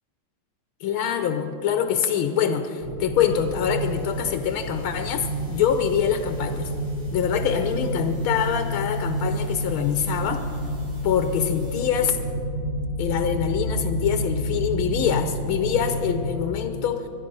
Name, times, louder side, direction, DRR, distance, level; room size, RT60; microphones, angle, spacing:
voice 1, 0.8-6.7 7.1-10.4 11.0-12.2 13.0-17.1, left 8 dB, 85° left, 7 dB, 1.7 m, -24 dB
sound 1, 2.8-16.3, equal, 70° right, 2.5 m, -29 dB
sound 2, 3.0-11.9, right 1 dB, 85° right, 6.1 m, -54 dB
20.5 x 12.5 x 5.4 m, 2.7 s
omnidirectional pair, 2.2 m